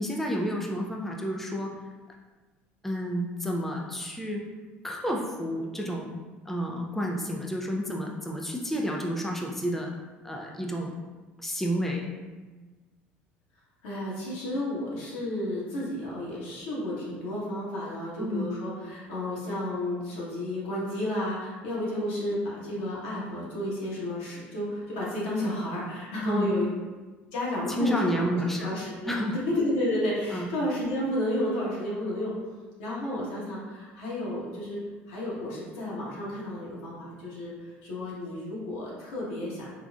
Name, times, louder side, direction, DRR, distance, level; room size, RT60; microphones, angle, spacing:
voice 1, 0.0-1.7 2.8-4.4 4.8-6.1 6.5-9.9 10.2-10.9 11.4-12.1 18.2-18.5 26.2-26.5 27.7-28.7 29.1-29.4 30.3-30.5, equal, 5° left, 0 dB, 0.4 m, -30 dB
voice 2, 13.8-26.7 27.3-32.3 32.8-34.8 35.1-39.7, left 1 dB, 80° left, -6 dB, 1.1 m, -32 dB
3.8 x 2.3 x 2.4 m, 1.3 s
hypercardioid pair, 70°, 6 cm